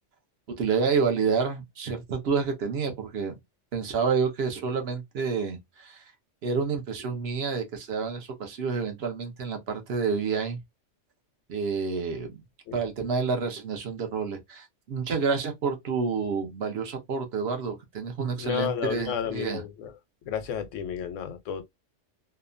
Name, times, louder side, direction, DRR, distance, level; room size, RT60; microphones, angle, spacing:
voice 1, 0.6-3.4 3.7-6.0 6.4-10.6 11.5-12.4 12.7-19.6, right 5 dB, 60° right, 0.9 m, -29 dB
voice 2, 18.4-19.9 20.3-21.6, left 8 dB, 90° left, 1.0 m, -32 dB
2.8 x 2.2 x 2.4 m
omnidirectional pair, 1.2 m